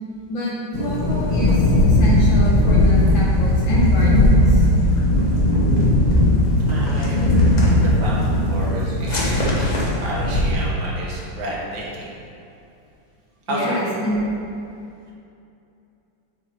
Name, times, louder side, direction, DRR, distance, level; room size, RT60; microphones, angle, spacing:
voice 1, 0.3-4.6 13.5-14.2, equal, 70° left, -5 dB, 2.2 m, -27 dB
sound 1, 0.7-10.5, left 1 dB, 45° left, 0.5 m, -17 dB
voice 2, 6.7-9.7 10.0-12.1 13.5-13.8, right 1 dB, 70° right, -4 dB, 1.9 m, -30 dB
6.6 x 4.9 x 4.4 m, 2.6 s
omnidirectional pair, 2.2 m